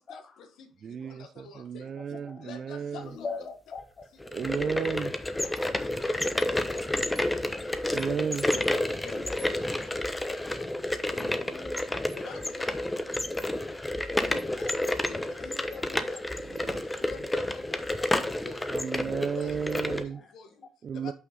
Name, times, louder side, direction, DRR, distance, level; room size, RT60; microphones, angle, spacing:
voice 1, 0.0-1.9 2.4-3.3 5.8-7.6 9.0-10.1 12.1-12.9 14.2-16.3 16.7-18.8 19.3-19.6 19.8-20.7 20.9-21.1, left 6 dB, 80° left, 1.4 m, -47 dB
voice 2, 0.8-3.1 4.3-5.1 7.9-8.5 16.4-16.8 17.2-17.3 18.6-20.2 20.8-21.1, right 7 dB, 55° right, 0.4 m, -33 dB
voice 3, 1.9-2.4 3.0-3.8 5.5-6.0 8.1-8.3 8.9-9.3 11.0-11.9, left 4 dB, 45° left, 1.2 m, -41 dB
sound 1, 4.2-20.0, left 1 dB, 15° left, 1.0 m, -30 dB
6.0 x 5.8 x 5.3 m
cardioid pair, 90°, 0 cm